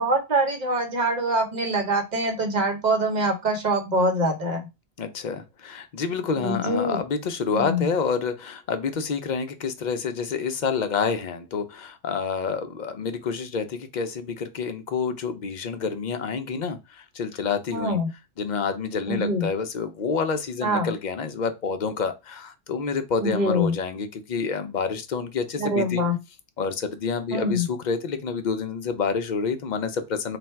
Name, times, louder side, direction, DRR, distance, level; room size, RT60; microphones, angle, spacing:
voice 1, 0.0-4.7 6.4-7.0 7.5-7.9 17.7-18.1 19.1-19.5 20.6-20.9 23.2-23.7 25.6-26.2 27.3-27.6, right 1 dB, 45° right, 1.0 m, -24 dB
voice 2, 5.0-18.0 18.4-26.0 26.6-30.4, left 5 dB, 55° left, 0.6 m, -28 dB
3.3 x 2.3 x 4.4 m
omnidirectional pair, 1.0 m